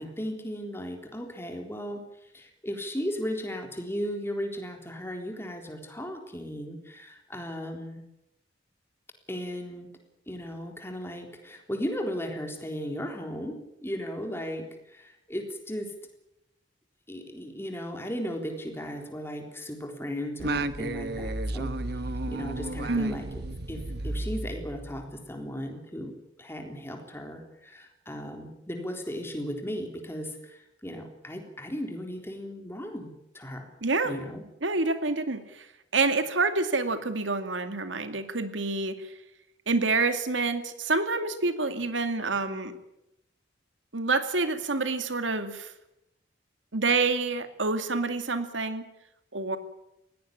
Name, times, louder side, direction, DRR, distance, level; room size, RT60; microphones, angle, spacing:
voice 1, 0.0-2.1 2.3-8.0 9.3-9.9 10.3-15.9 17.1-21.7 22.3-23.4 23.7-33.7 34.0-34.5, equal, 15° left, 4 dB, 3.8 m, -36 dB
Singing, 20.4-25.2, right 2 dB, 60° right, 1.1 m, -33 dB
voice 2, 22.9-23.2 33.8-34.1 34.6-35.7 35.9-39.1 39.7-42.7 43.9-45.7 46.7-48.9 49.3-49.6, right 3 dB, 85° right, 9 dB, 2.4 m, -27 dB
20.5 x 17.0 x 10.0 m, 0.86 s
head